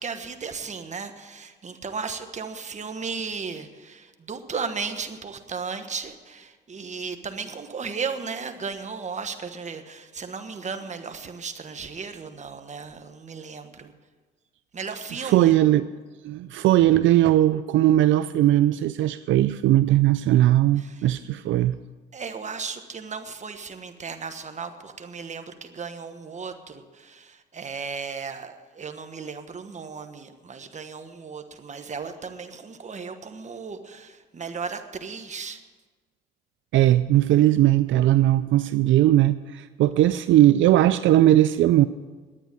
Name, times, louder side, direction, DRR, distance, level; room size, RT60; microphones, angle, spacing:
voice 1, 0.0-13.9 14.7-15.5 20.8-21.0 22.1-35.6, right 5 dB, 35° right, 8 dB, 1.3 m, -35 dB
voice 2, 15.2-15.9 16.2-21.8 36.7-41.9, right 14 dB, 75° right, 13 dB, 0.4 m, -19 dB
11.0 x 9.1 x 8.9 m, 1.4 s
cardioid pair, 90°, 20 cm